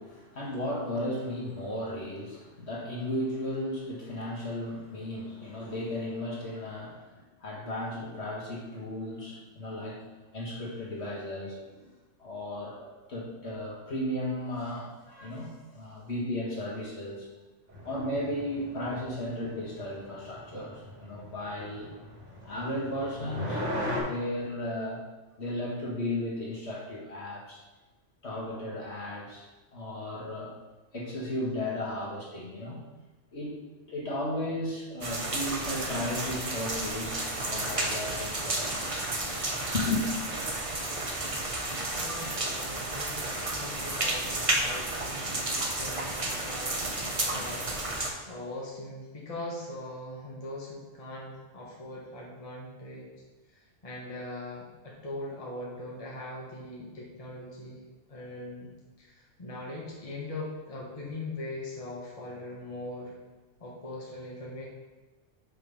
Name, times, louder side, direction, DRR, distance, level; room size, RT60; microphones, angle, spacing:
voice 1, 0.0-10.1 10.3-11.9 12.2-17.3 17.9-21.9 22.4-25.0 25.4-27.6 28.2-30.6 30.9-32.8 33.3-33.6 33.9-39.0 39.7-40.1, left 1 dB, 60° left, -5 dB, 2.0 m, -35 dB
sound 1, 17.7-24.0, left 1 dB, 70° right, 2.7 m, -38 dB
sound 2, 35.0-48.1, right 2 dB, 30° right, 0.9 m, -32 dB
voice 2, 42.0-47.6 48.0-53.1 53.8-57.8 58.1-58.7 59.0-63.1 63.6-64.7, left 1 dB, 30° left, -4 dB, 1.5 m, -41 dB
5.6 x 5.4 x 5.4 m, 1.2 s
omnidirectional pair, 1.3 m